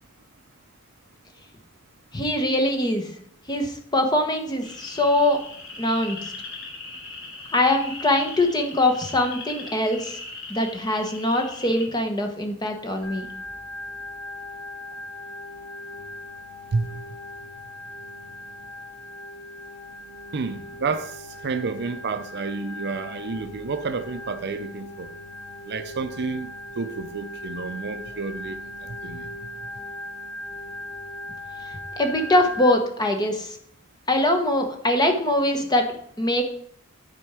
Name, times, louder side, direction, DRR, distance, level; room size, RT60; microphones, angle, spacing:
voice 1, 2.1-3.1 3.5-5.4 5.8-6.2 7.5-10.2 10.5-13.3 32.0-33.6 34.1-35.9 36.2-36.4, left 1 dB, 20° left, 1.1 m, -22 dB
sound 1, 4.6-11.8, left 3 dB, 60° left, 2.8 m, -39 dB
Organ, 13.0-32.7, left 1 dB, 90° left, 2.1 m, -39 dB
voice 2, 20.3-25.1 25.7-28.6 29.0-29.3, right 4 dB, 50° right, 0.5 m, -30 dB
10.5 x 4.4 x 4.8 m
head